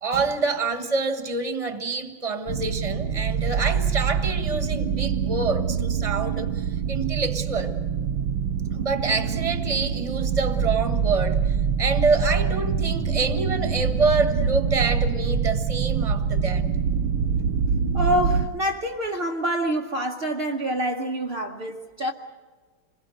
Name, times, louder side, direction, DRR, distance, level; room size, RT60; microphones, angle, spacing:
voice 1, 0.0-7.7 8.7-16.7, right 4 dB, 20° right, 1.1 m, -27 dB
sound 1, 2.5-18.5, right 6 dB, 70° right, 1.6 m, -25 dB
voice 2, 17.9-22.1, right 1 dB, 50° right, 0.7 m, -26 dB
27.0 x 20.5 x 6.5 m
omnidirectional pair, 2.3 m